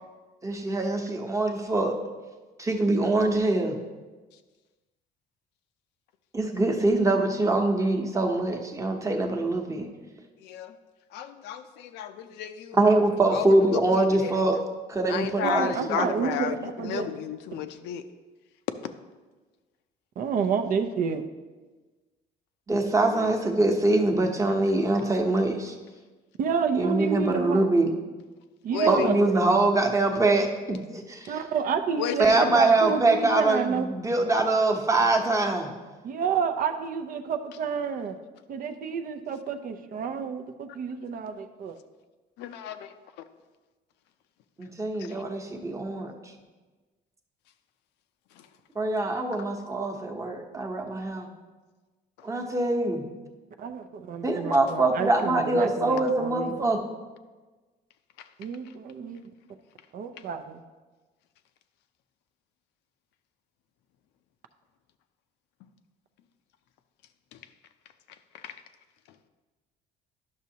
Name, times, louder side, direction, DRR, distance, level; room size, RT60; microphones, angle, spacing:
voice 1, 0.4-1.9 2.6-3.7 6.3-9.9 12.7-14.6 14.9-16.3 22.7-25.8 26.7-27.9 28.9-31.4 32.2-35.7 44.6-46.1 48.7-51.3 52.2-53.0 54.2-56.8, right 2 dB, 20° right, 3 dB, 0.9 m, -24 dB
voice 2, 10.4-10.7 11.1-12.8 13.3-14.4 15.1-18.0 20.4-20.5 23.1-23.3 28.7-29.2 31.9-32.6 42.4-43.3 45.0-45.2 48.4-48.5 58.2-58.3 67.3-67.4 68.3-68.6, left 9 dB, 85° left, 9 dB, 0.5 m, -33 dB
voice 3, 15.4-17.1 17.5-17.6 20.2-21.3 26.4-27.6 28.6-29.2 31.3-33.9 36.0-38.2 38.5-41.7 53.6-56.6 58.4-59.3 59.9-60.6, right 6 dB, 55° right, 8 dB, 0.5 m, -29 dB
10.5 x 6.1 x 2.8 m, 1.3 s
cardioid pair, 110°, 17 cm